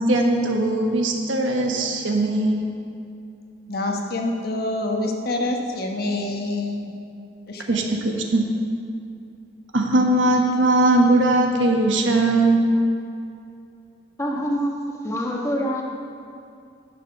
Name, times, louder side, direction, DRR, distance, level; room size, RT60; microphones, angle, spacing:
voice 1, 0.1-2.7 7.7-8.4 9.7-12.7, right 2 dB, 85° right, 2 dB, 1.2 m, -20 dB
voice 2, 3.7-6.9 7.5-7.8, left 2 dB, 55° left, 2 dB, 1.1 m, -26 dB
voice 3, 14.2-15.8, equal, 15° left, -2 dB, 1.3 m, -25 dB
10.5 x 7.2 x 5.7 m, 2.5 s
head